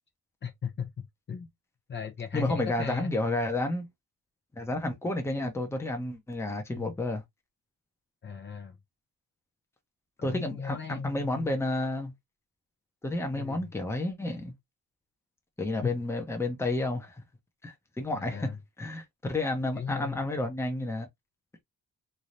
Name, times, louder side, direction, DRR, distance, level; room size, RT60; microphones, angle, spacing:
voice 1, 0.4-1.5 1.9-3.2 6.7-6.9 8.2-8.8 10.2-11.5 13.3-13.7 15.8-15.9 18.1-18.6 19.7-20.2, left 7 dB, 35° left, 0.8 m, -37 dB
voice 2, 2.3-3.9 4.6-7.2 10.2-12.1 13.0-14.5 15.6-17.2 17.6-18.5 18.8-21.1, left 2 dB, 10° left, 0.9 m, -31 dB
3.8 x 3.3 x 2.7 m
cardioid pair, 155°, 32 cm